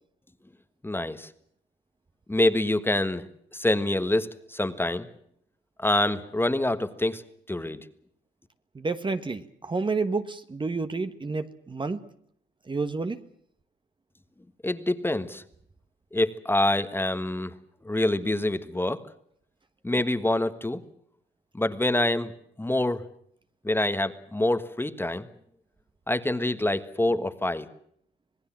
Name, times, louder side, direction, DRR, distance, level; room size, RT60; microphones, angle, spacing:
voice 1, 0.8-1.3 2.3-3.2 3.5-5.1 5.8-7.2 7.5-7.8 14.6-15.4 16.1-17.5 17.8-19.0 19.8-20.8 21.5-22.3 22.6-23.0 23.6-25.3 26.1-27.7, left 1 dB, 10° left, 11 dB, 1.5 m, -26 dB
voice 2, 8.7-12.1 12.7-13.2, right 3 dB, 25° right, 9 dB, 1.3 m, -30 dB
26.5 x 18.5 x 7.4 m, 0.65 s
cardioid pair, 90°, 20 cm